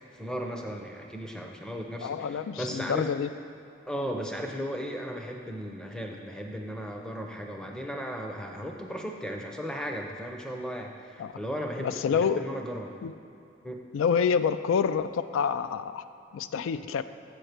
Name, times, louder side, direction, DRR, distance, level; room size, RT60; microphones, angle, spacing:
voice 1, 0.0-3.1 3.9-12.9 13.6-13.8, equal, 5° left, 2 dB, 0.5 m, -36 dB
voice 2, 2.0-3.3 11.2-11.4 11.8-12.4 13.0-13.1 13.9-16.0 16.3-17.0, left 6 dB, 90° left, 12 dB, 0.3 m, -27 dB
7.1 x 4.5 x 6.5 m, 2.7 s
head